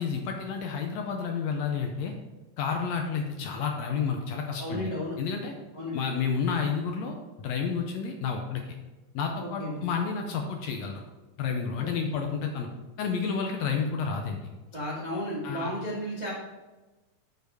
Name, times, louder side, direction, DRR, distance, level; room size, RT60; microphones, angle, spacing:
voice 1, 0.0-2.1 2.6-4.9 5.2-5.5 5.9-8.6 9.2-11.0 11.4-12.7 13.0-14.4 15.4-15.7, left 6 dB, 75° left, 3 dB, 1.7 m, -30 dB
voice 2, 4.6-5.2 5.7-6.0 9.4-9.8 11.8-11.9 14.7-16.3, equal, 25° right, -6 dB, 0.9 m, -33 dB
7.9 x 4.6 x 4.7 m, 1.2 s
omnidirectional pair, 3.5 m